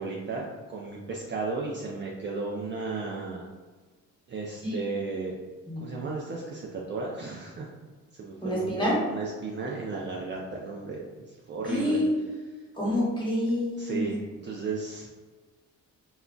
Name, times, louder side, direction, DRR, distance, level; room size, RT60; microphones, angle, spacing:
voice 1, 0.0-3.4 4.3-5.3 5.8-7.7 8.1-12.0 13.8-15.1, right 3 dB, 40° right, -2 dB, 0.4 m, -34 dB
voice 2, 8.4-8.9 11.7-12.1 12.7-14.1, left 1 dB, 15° left, -6 dB, 1.3 m, -27 dB
2.3 x 2.1 x 3.7 m, 1.4 s
cardioid pair, 90°, 30 cm